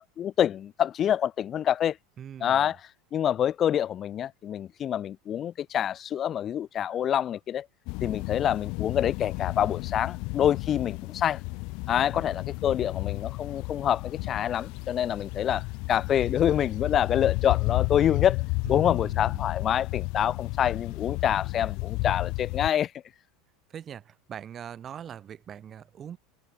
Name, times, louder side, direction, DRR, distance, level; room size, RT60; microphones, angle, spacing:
voice 1, 0.0-2.0 2.4-2.8 3.1-7.7 8.0-11.4 11.9-18.4 18.7-22.9, left 10 dB, 35° left, 0.4 m, -26 dB
voice 2, 2.2-2.7 18.6-19.5 23.7-26.2, right 9 dB, 35° right, 2.7 m, -42 dB
sound 1, 7.9-22.7, left 29 dB, 60° left, 1.5 m, -32 dB
supercardioid pair, 120°, 0 cm